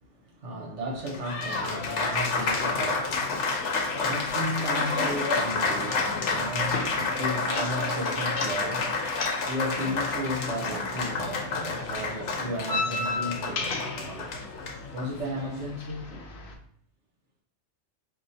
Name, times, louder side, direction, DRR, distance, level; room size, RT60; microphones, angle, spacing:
voice 1, 0.0-14.3 14.9-16.3, equal, 75° right, 1.3 m, -35 dB
Applause, 0.9-15.6, left 3 dB, 80° left, 1.0 m, -30 dB
sound 1, 1.5-16.5, left 3 dB, 55° left, 0.8 m, -38 dB
4.8 x 2.7 x 2.7 m
omnidirectional pair, 1.2 m